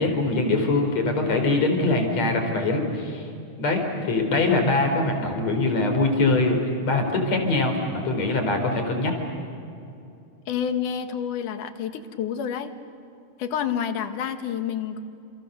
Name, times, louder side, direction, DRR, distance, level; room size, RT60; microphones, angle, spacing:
voice 1, 0.0-3.3 3.6-6.6 6.8-9.1, left 2 dB, 55° left, 4 dB, 4.9 m, -23 dB
voice 2, 10.5-12.7 13.4-15.0, left 8 dB, 80° left, 8 dB, 2.9 m, -28 dB
30.0 x 28.5 x 6.8 m, 2.6 s
omnidirectional pair, 3.6 m